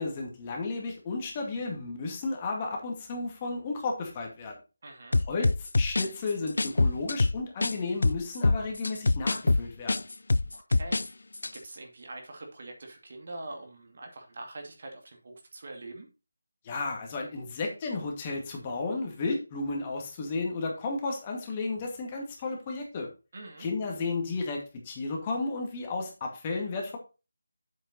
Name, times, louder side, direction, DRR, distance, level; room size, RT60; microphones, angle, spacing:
voice 1, 0.0-4.6 5.3-10.0 16.6-23.1 23.6-27.0, left 3 dB, 25° left, 1 dB, 2.3 m, -33 dB
voice 2, 4.8-5.2 10.5-16.1 23.3-23.7, right 2 dB, 45° right, 2 dB, 2.5 m, -44 dB
sound 1, 5.1-7.7 8.0-11.1 11.3-11.5, left 2 dB, 65° left, 0.4 m, -25 dB
7.8 x 7.3 x 4.1 m, 0.30 s
figure-of-eight pair, 160°, 0 cm